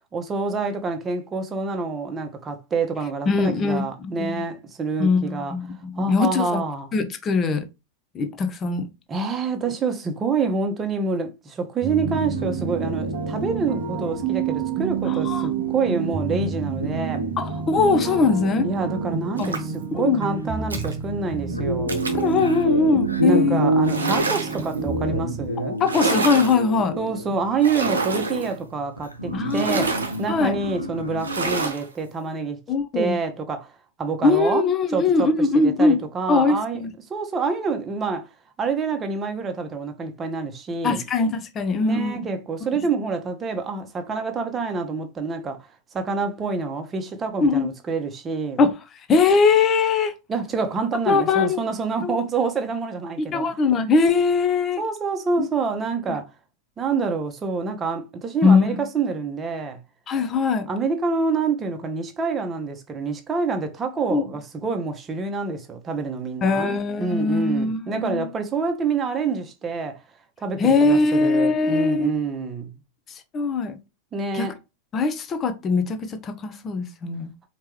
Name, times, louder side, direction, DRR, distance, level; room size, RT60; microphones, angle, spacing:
voice 1, 0.1-5.5 6.0-6.9 9.1-17.2 18.6-22.0 23.2-25.8 27.0-32.6 32.9-33.7 34.0-34.6 34.9-35.3 35.5-36.8 37.1-38.3 38.6-41.0 41.8-45.7 45.9-48.6 50.3-53.5 54.8-56.3 56.8-59.8 60.7-69.9 70.4-72.7 74.1-74.5, right 4 dB, 20° right, 0.9 m, -27 dB
voice 2, 3.3-4.4 5.0-6.6 6.9-7.7 8.1-8.9 15.1-15.5 17.4-18.7 19.4-19.5 19.9-20.2 22.1-23.6 25.8-27.0 29.3-29.9 30.3-30.6 32.7-33.2 34.2-36.0 36.3-36.9 40.8-42.2 42.7-42.8 47.4-47.7 48.6-48.7 49.1-50.1 51.1-51.6 52.0-52.2 53.2-54.8 55.4-55.5 56.1-56.2 58.4-58.8 60.1-60.7 64.1-64.2 66.4-68.3 70.6-72.1 73.1-73.8 74.3-74.5 74.9-77.3, left 4 dB, 25° left, 0.7 m, -21 dB
sound 1, 11.8-25.5, right 7 dB, 35° right, 0.6 m, -29 dB
sound 2, 12.1-31.6, equal, 90° left, 0.7 m, -31 dB
sound 3, 19.4-19.8 20.7-20.9 21.9-22.3 23.8-24.7 25.8-26.6 27.6-28.5 29.5-30.2 31.2-31.9, right 3 dB, 75° right, 0.8 m, -27 dB
4.6 x 3.0 x 3.0 m
figure-of-eight pair, 90°, 0 cm